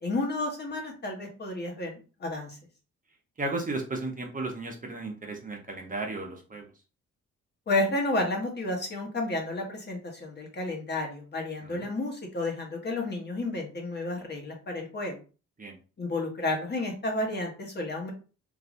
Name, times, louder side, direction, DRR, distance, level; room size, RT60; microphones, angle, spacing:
voice 1, 0.0-2.6 7.7-15.2 16.0-18.1, left 2 dB, 35° left, 1 dB, 1.1 m, -31 dB
voice 2, 3.4-6.7 11.6-11.9 15.6-15.8, right 2 dB, 25° right, 1 dB, 0.8 m, -34 dB
3.2 x 2.5 x 2.5 m, 0.35 s
cardioid pair, 90°, 30 cm